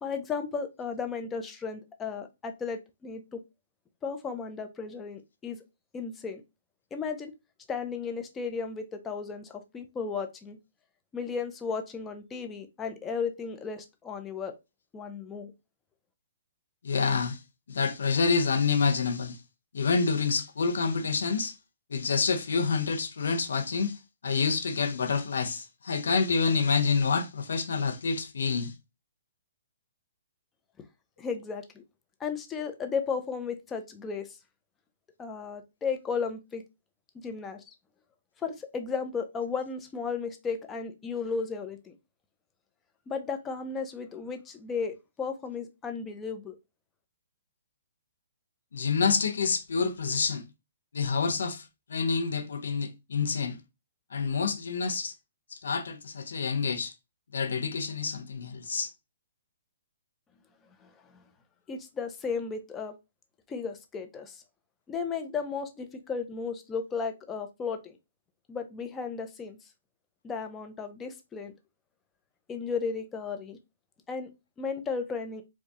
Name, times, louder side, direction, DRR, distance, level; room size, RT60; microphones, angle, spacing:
voice 1, 0.0-3.4 4.0-5.6 5.9-6.4 6.9-7.3 7.7-10.6 11.1-14.5 14.9-15.5 31.2-31.8 32.2-34.3 35.2-36.6 37.2-37.6 38.4-41.9 43.1-46.6 60.8-61.2 61.7-62.9 63.5-64.4 64.9-68.0 68.5-69.6 70.2-71.5 72.5-73.6 74.1-74.3 74.6-75.4, left 5 dB, 15° left, 0.6 m, -34 dB
voice 2, 16.8-17.4 17.7-19.4 19.7-21.5 21.9-28.7 48.7-50.4 50.9-53.6 54.1-55.1 55.5-56.9 57.3-58.9, left 5 dB, 75° left, 0.8 m, -28 dB
4.5 x 2.3 x 2.9 m
hypercardioid pair, 140°, 0 cm